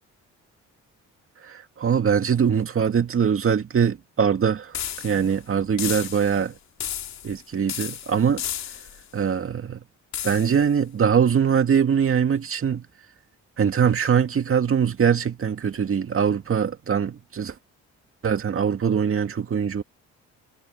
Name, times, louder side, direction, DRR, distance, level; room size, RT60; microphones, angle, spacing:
voice 1, 1.4-4.8 5.0-6.5 7.2-8.4 9.1-9.8 10.2-12.9 13.6-17.5 18.2-19.8, right 7 dB, 45° right, 2.1 m, -22 dB
sound 1, 4.7-5.3 5.8-6.4 6.8-7.4 7.7-9.0 10.1-10.6, left 10 dB, 65° left, 2.5 m, -33 dB
cardioid pair, 90°, 30 cm